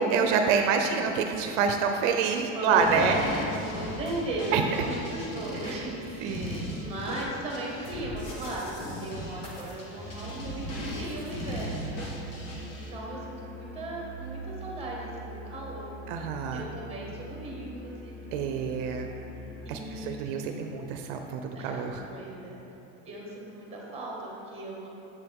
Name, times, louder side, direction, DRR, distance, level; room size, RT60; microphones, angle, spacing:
voice 1, 0.0-3.2 4.5-4.6 5.6-5.8 6.2-6.7 16.1-16.6 18.3-19.1 19.7-22.0, right 6 dB, 75° right, 4 dB, 0.6 m, -27 dB
voice 2, 2.5-3.2 3.7-11.9 12.7-15.9 16.5-18.1 19.6-20.6 21.5-22.6 23.0-24.9, right 1 dB, 15° right, -3 dB, 1.5 m, -37 dB
sound 1, 2.8-12.9, left 1 dB, 40° left, 1.4 m, -38 dB
Musical instrument, 9.9-19.9, right 1 dB, 5° left, 0.9 m, -43 dB
7.6 x 6.7 x 3.5 m, 3.0 s
cardioid pair, 150°, 37 cm